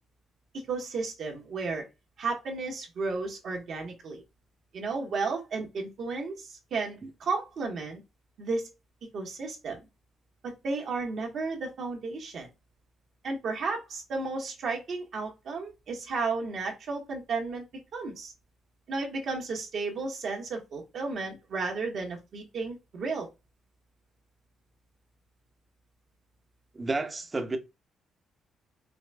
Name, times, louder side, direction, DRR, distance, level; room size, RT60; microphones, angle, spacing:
voice 1, 0.7-1.8 2.2-4.2 4.7-8.0 8.4-8.7 9.1-9.8 10.4-12.5 13.2-17.6 17.9-18.3 18.9-23.3, right 4 dB, 65° right, 1.2 m, -33 dB
voice 2, 26.7-27.6, right 3 dB, 25° right, 0.7 m, -31 dB
4.8 x 2.5 x 2.2 m
cardioid pair, 90°, 0 cm